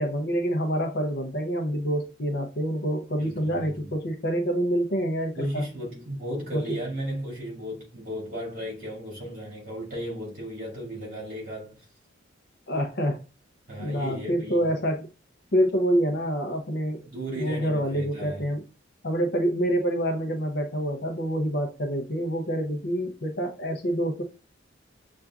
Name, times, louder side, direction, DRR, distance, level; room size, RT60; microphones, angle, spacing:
voice 1, 0.0-5.6 6.5-6.6 12.7-13.2 13.8-15.1 15.5-17.0 17.4-18.6 19.0-24.2, equal, 50° left, 0.6 m, -27 dB
voice 2, 3.2-3.9 5.4-11.9 13.7-14.8 17.1-18.5, equal, 40° right, 2.1 m, -35 dB
6.7 x 2.5 x 2.4 m
head